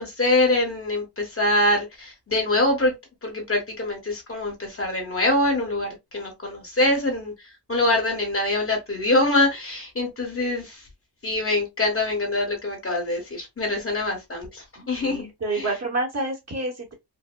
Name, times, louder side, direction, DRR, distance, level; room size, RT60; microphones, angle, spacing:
voice 1, 0.0-2.9 3.2-7.3 7.7-10.8 11.2-15.2 15.5-15.7, left 2 dB, 35° left, 1.1 m, -24 dB
voice 2, 14.8-16.9, right 2 dB, 40° right, 1.1 m, -29 dB
4.7 x 2.1 x 2.2 m
wide cardioid pair, 155°, 41 cm